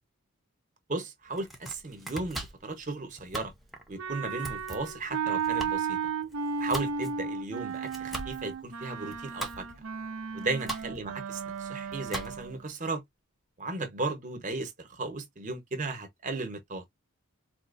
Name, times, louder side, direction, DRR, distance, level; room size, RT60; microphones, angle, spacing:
voice 1, 0.9-3.5 3.9-6.0 6.6-9.7 10.3-13.0 13.6-16.8, right 3 dB, 35° right, 1.0 m, -35 dB
Domestic sounds home sounds, 1.3-12.7, right 1 dB, ahead, 0.6 m, -42 dB
Wind instrument woodwind instrument, 4.0-12.6, right 6 dB, 70° right, 0.7 m, -34 dB
4.1 x 2.4 x 2.5 m
head